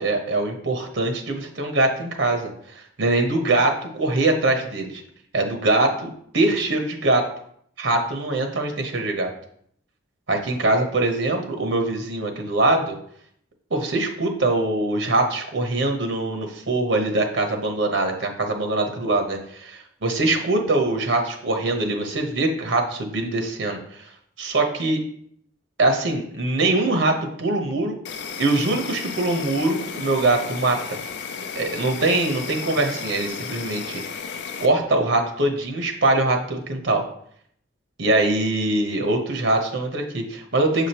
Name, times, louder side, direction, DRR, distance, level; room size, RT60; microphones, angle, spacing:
voice 1, 0.0-5.0 5.3-7.2 7.8-9.3 10.3-13.0 13.7-24.1 24.4-25.0 25.8-28.0 28.4-31.0 31.5-34.0 34.6-37.0 38.0-40.9, right 2 dB, 75° right, 3 dB, 1.1 m, -23 dB
Insect, 28.0-34.7, left 6 dB, 60° left, 0.4 m, -34 dB
7.1 x 5.0 x 2.9 m, 0.65 s
head